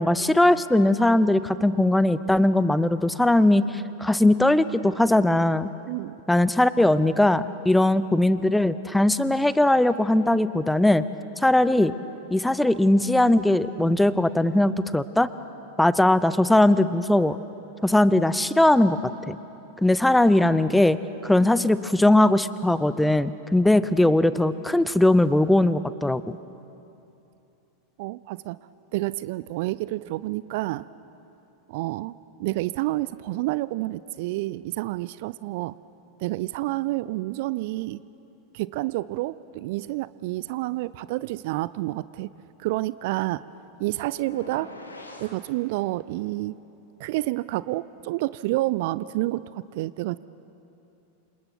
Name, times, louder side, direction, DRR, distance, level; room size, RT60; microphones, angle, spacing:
voice 1, 0.0-5.7 6.3-11.0 11.4-11.9 12.3-15.3 15.8-17.4 17.8-19.0 19.3-19.4 19.8-26.4, left 1 dB, 5° left, 15 dB, 0.7 m, -20 dB
voice 2, 28.0-28.6 28.9-30.9 31.7-35.7 36.2-38.0 38.5-42.3 42.6-43.4 43.8-44.7 45.2-46.6 47.0-50.2, right 18 dB, 50° right, 18 dB, 0.5 m, -29 dB
sound 1, 44.1-45.4, left 2 dB, 80° left, 3.0 m, -42 dB
28.0 x 27.0 x 6.1 m, 2.9 s
figure-of-eight pair, 90°, 0 cm